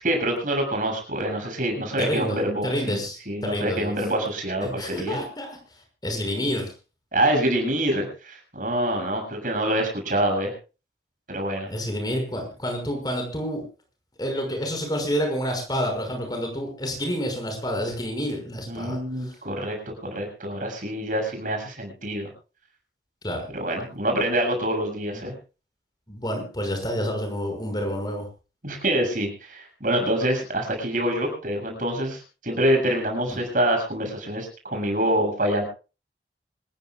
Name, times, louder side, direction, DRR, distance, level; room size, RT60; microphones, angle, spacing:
voice 1, 0.0-5.2 7.1-10.5 11.3-11.7 18.7-22.3 23.5-25.3 28.6-35.6, right 1 dB, 50° right, 3 dB, 7.3 m, -26 dB
voice 2, 2.0-3.9 4.6-5.5 6.0-6.7 11.7-13.6 14.2-19.3 23.2-23.5 25.1-25.3 26.1-28.3 33.3-33.4, equal, 25° left, 3 dB, 5.9 m, -29 dB
26.5 x 15.5 x 2.4 m, 0.33 s
head